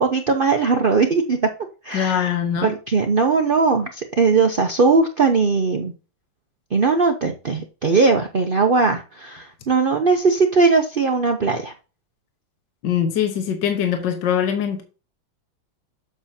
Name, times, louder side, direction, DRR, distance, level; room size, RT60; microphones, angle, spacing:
voice 1, 0.0-1.4 1.8-2.4 2.6-5.9 6.7-11.7, right 4 dB, 65° right, 0.5 m, -19 dB
voice 2, 1.9-2.7 12.8-14.8, left 8 dB, 65° left, 1.8 m, -22 dB
8.0 x 6.9 x 2.7 m
omnidirectional pair, 2.1 m